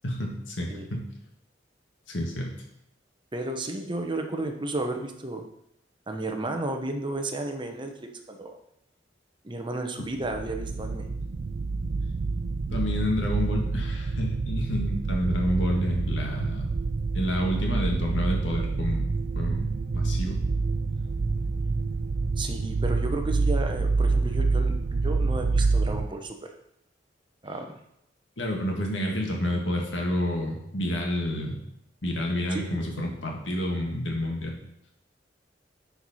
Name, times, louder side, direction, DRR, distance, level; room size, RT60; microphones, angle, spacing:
voice 1, 0.0-1.1 2.1-2.6 12.7-16.7 17.1-19.1 19.3-20.4 28.4-31.6 32.0-34.6, equal, 85° left, 1 dB, 1.8 m, -29 dB
voice 2, 3.3-5.4 6.1-8.6 9.4-11.1 22.4-26.5 27.4-27.8 32.5-33.0, right 2 dB, 25° right, 4 dB, 0.9 m, -33 dB
sound 1, 10.2-26.1, right 3 dB, 50° right, 0.4 m, -27 dB
10.0 x 4.6 x 4.2 m, 0.77 s
head